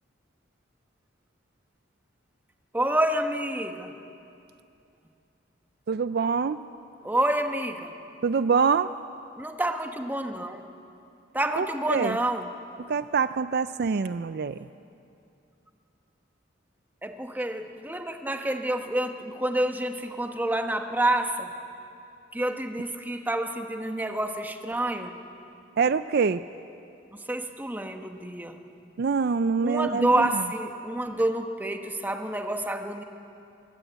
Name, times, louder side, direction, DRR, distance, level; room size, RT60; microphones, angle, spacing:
voice 1, 2.7-3.9 7.0-7.9 9.4-10.6 11.3-12.5 17.0-21.5 22.3-25.2 27.2-28.6 29.6-33.0, right 1 dB, 10° right, 5 dB, 1.2 m, -28 dB
voice 2, 5.9-6.6 8.2-8.9 11.6-12.2 12.9-14.6 25.8-26.4 29.0-30.4, right 5 dB, 55° right, 13 dB, 0.4 m, -25 dB
23.5 x 16.5 x 8.1 m, 2.6 s
head